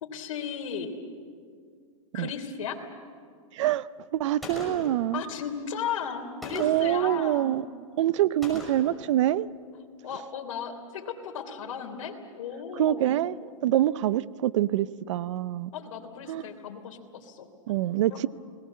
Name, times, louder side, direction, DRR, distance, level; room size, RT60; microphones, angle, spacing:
voice 1, 0.0-0.9 2.1-2.8 5.1-7.5 10.0-13.2 15.7-17.8 18.1-18.3, left 7 dB, 70° left, 3 dB, 3.4 m, -36 dB
voice 2, 3.5-3.9 4.1-5.2 6.5-7.6 8.0-9.5 12.8-15.7 16.3-16.4 17.7-18.3, right 13 dB, 60° right, 18 dB, 0.7 m, -25 dB
Gunshot gunfire, 4.4-5.0 6.4-7.0 8.4-9.0, left 1 dB, ahead, 6.1 m, -38 dB
30.0 x 19.5 x 7.5 m, 2.1 s
hypercardioid pair, 145°, 17 cm